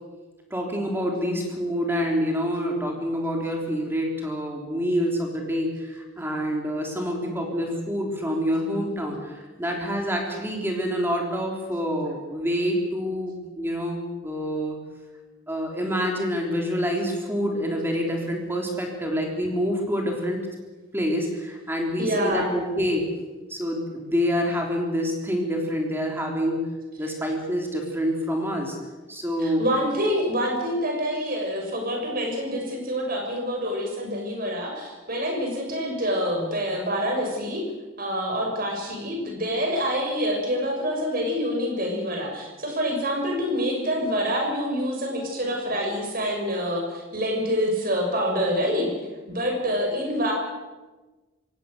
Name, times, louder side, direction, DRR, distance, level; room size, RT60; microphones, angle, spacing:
voice 1, 0.5-14.8 15.5-20.5 20.9-23.1 23.5-26.7 27.0-28.8 29.1-29.7, equal, 10° right, 1 dB, 3.5 m, -27 dB
voice 2, 22.0-22.5 29.4-37.6 38.0-48.9 49.3-50.3, equal, 45° right, 1 dB, 6.3 m, -26 dB
26.0 x 18.0 x 6.7 m, 1.2 s
head